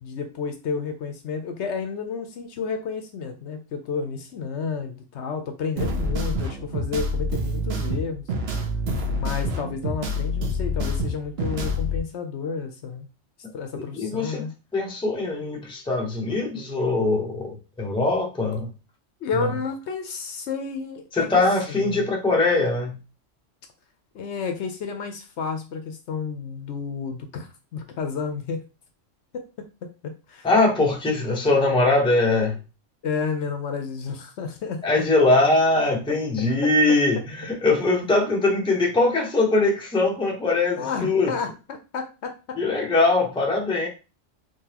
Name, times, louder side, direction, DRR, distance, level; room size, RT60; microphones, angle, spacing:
voice 1, 0.0-8.3 9.1-13.1 13.5-14.5 19.2-21.4 21.7-22.1 24.1-28.6 29.3-30.5 31.1-31.2 33.0-35.1 36.1-36.2 36.6-36.7 40.8-42.6, left 5 dB, 70° left, 6 dB, 0.9 m, -31 dB
sound 1, 5.8-12.0, left 1 dB, 60° right, 0.9 m, -27 dB
voice 2, 13.7-14.4 14.7-18.7 21.1-23.0 30.4-32.6 34.8-41.3 42.6-43.9, left 2 dB, 5° left, 0 dB, 0.6 m, -22 dB
3.8 x 2.9 x 2.8 m, 0.31 s
omnidirectional pair, 1.3 m